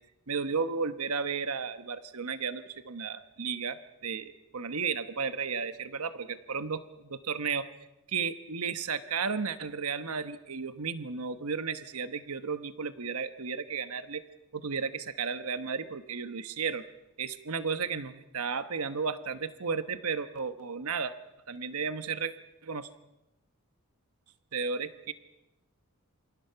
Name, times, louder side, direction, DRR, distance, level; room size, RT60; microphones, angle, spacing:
voice 1, 0.3-7.7 8.1-14.2 14.5-16.8 17.2-21.1 21.5-22.3 22.6-22.9 24.5-25.1, right 5 dB, 80° right, 11 dB, 1.1 m, -33 dB
28.0 x 25.5 x 5.8 m, 0.97 s
head